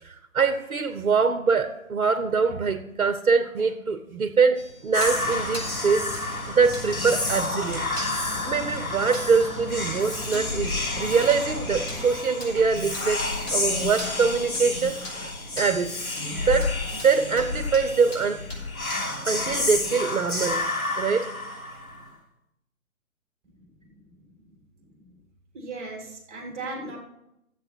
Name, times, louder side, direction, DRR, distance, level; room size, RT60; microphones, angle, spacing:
voice 1, 0.0-6.1 6.5-15.3 15.6-16.0 16.3-18.4 19.2-20.7 21.0-21.3, right 5 dB, 65° right, 10 dB, 1.0 m, -24 dB
sound 1, 4.5-19.3, left 1 dB, 55° left, 4.5 m, -43 dB
Whispering, 4.9-22.1, left 2 dB, 80° left, 2.6 m, -30 dB
sound 2, 5.0-12.2, left 1 dB, 5° left, 1.6 m, -38 dB
voice 2, 23.5-24.5 24.8-25.1 25.5-27.0, right 3 dB, 15° right, 0 dB, 2.6 m, -39 dB
13.5 x 7.8 x 4.5 m, 0.83 s
figure-of-eight pair, 140°, 42 cm